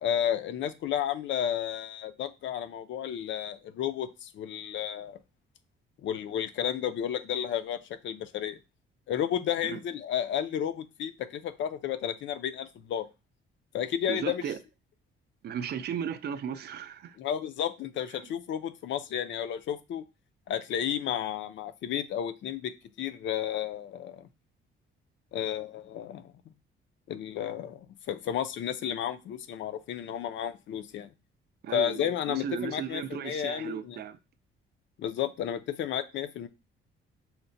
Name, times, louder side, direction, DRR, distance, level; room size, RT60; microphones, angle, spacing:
voice 1, 0.0-5.2 6.0-8.6 9.1-13.1 13.7-14.4 17.2-20.0 20.5-22.7 23.0-24.3 25.3-26.5 27.1-31.1 31.7-34.0 35.0-36.5, left 10 dB, 65° left, 0.4 m, -32 dB
voice 2, 14.1-14.6 15.4-17.2 18.1-18.3 31.6-34.2, right 8 dB, 50° right, 0.4 m, -36 dB
5.7 x 2.1 x 2.6 m
cardioid pair, 150°, 21 cm